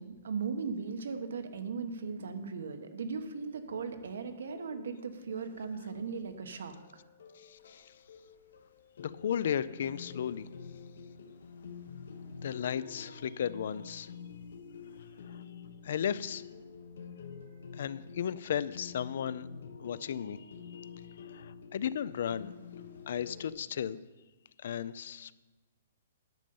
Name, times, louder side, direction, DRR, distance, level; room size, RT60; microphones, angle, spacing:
voice 1, 0.0-6.7, right 5 dB, 80° right, 8 dB, 1.1 m, -38 dB
sound 1, 4.5-23.5, left 6 dB, 80° left, 1.2 m, -48 dB
voice 2, 7.4-7.9 9.0-10.5 12.4-14.1 15.2-15.4 15.8-16.4 17.7-19.5 19.8-20.4 20.7-20.9 21.2-22.5 23.1-24.0 24.6-25.3, left 8 dB, 55° left, 18 dB, 0.4 m, -35 dB
10.5 x 5.4 x 7.0 m, 1.2 s
hypercardioid pair, 175°, 0 cm